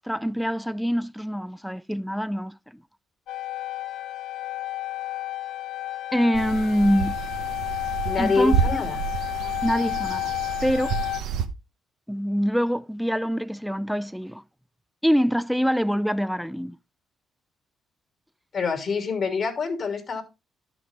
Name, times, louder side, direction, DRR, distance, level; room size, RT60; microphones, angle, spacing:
voice 1, 0.0-2.5 6.1-7.2 8.2-8.8 9.6-10.3 10.6-11.0 12.1-14.4 15.0-16.8, equal, ahead, 0.4 m, -24 dB
sound 1, 3.3-11.2, left 15 dB, 80° left, 0.7 m, -31 dB
sound 2, 6.3-11.5, right 8 dB, 90° right, 1.0 m, -29 dB
voice 2, 8.0-9.0 18.5-20.2, left 4 dB, 50° left, 2.9 m, -26 dB
11.5 x 6.1 x 3.5 m
cardioid pair, 90°, 0 cm